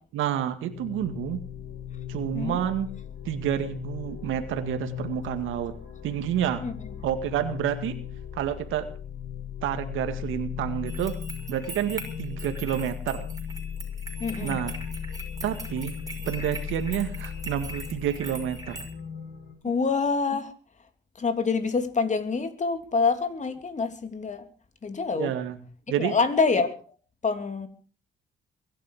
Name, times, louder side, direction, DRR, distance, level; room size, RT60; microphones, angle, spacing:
voice 1, 0.1-1.4 2.1-2.9 3.2-5.7 6.0-6.6 7.0-8.0 8.3-8.9 9.6-11.1 11.5-13.2 14.4-14.7 15.4-15.9 16.2-18.8 25.2-25.6 25.9-26.1, right 10 dB, 90° right, 8 dB, 2.1 m, -29 dB
sound 1, 0.6-19.5, left 8 dB, 60° left, 7.6 m, -37 dB
voice 2, 2.3-2.6 6.6-7.0 14.2-14.6 19.6-20.5 20.8-20.9 21.1-24.5 24.8-25.3 26.0-26.9 27.2-27.7, left 4 dB, 35° left, 9 dB, 3.2 m, -26 dB
sound 2, 10.9-18.9, right 1 dB, 20° right, 5.8 m, -41 dB
23.0 x 11.5 x 5.0 m, 0.38 s
cardioid pair, 90°, 20 cm